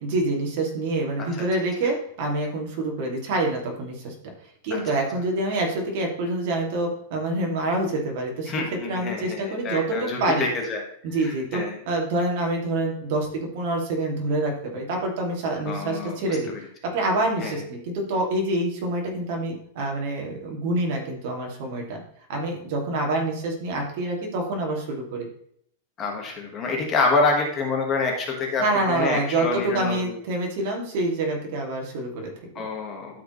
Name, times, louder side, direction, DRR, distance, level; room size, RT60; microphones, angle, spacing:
voice 1, 0.0-4.1 4.6-10.5 11.0-16.5 16.9-22.0 22.3-25.3 28.6-32.7, right 2 dB, 50° right, 1 dB, 2.3 m, -26 dB
voice 2, 8.5-10.8 11.2-11.8 15.6-16.6 17.4-17.5 26.0-30.2 32.5-33.2, left 3 dB, 20° left, 1 dB, 1.4 m, -27 dB
12.5 x 5.0 x 3.1 m, 0.65 s
supercardioid pair, 165°, 0 cm